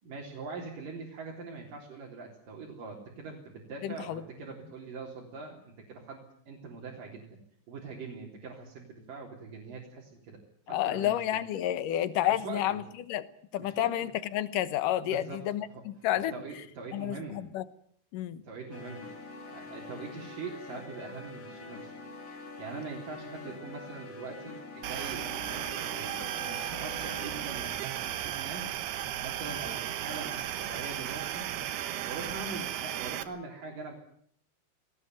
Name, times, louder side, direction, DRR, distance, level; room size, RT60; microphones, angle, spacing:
voice 1, 0.0-7.3 7.7-10.4 10.7-11.2 12.3-12.8 13.6-13.9 15.0-15.8 16.3-17.4 18.4-19.0 19.5-21.9 22.6-31.7 32.0-34.0, right 4 dB, 55° right, -1 dB, 5.1 m, -43 dB
voice 2, 3.8-4.2 10.7-13.3 13.5-16.4 16.9-17.6 18.1-18.4, left 12 dB, 65° left, 14 dB, 2.4 m, -30 dB
sound 1, 18.7-27.5, left 3 dB, 40° left, 3.4 m, -45 dB
sound 2, 24.8-33.2, right 11 dB, 80° right, 3.2 m, -35 dB
19.5 x 19.0 x 9.4 m, 0.65 s
omnidirectional pair, 4.6 m